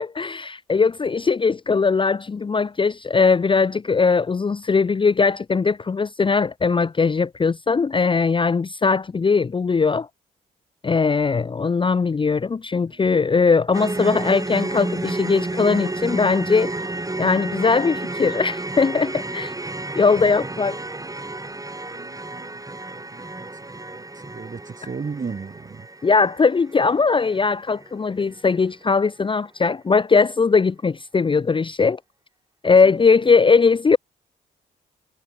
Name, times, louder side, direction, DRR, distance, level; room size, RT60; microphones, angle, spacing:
voice 1, 0.0-10.1 10.8-16.7 17.2-19.5 19.9-20.8 26.0-32.0 32.6-34.0, left 4 dB, 25° left, 0.6 m, -20 dB
voice 2, 12.9-14.0 19.8-21.1 21.9-25.9 32.7-33.4, right 5 dB, 40° right, 3.7 m, -39 dB
sound 1, 13.7-27.9 28.2-28.4 28.8-28.9, right 2 dB, 15° right, 3.2 m, -31 dB
hypercardioid pair, 45°, 20 cm